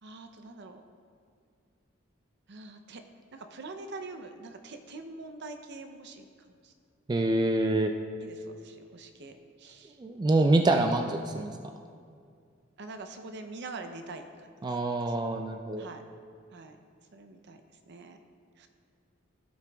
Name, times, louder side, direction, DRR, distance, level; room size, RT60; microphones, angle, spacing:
voice 1, 0.0-0.8 2.5-3.0 3.3-6.3 6.6-6.7 8.2-9.3 9.6-9.9 10.4-10.6 12.8-14.5 15.8-16.0 16.5-16.8 17.1-17.6 17.9-18.2 18.6-18.7, right 3 dB, 60° right, 7 dB, 0.6 m, -44 dB
voice 2, 7.1-7.9 10.0-11.5 14.6-15.9, right 2 dB, 20° right, 4 dB, 0.3 m, -26 dB
15.5 x 5.8 x 2.3 m, 2.2 s
head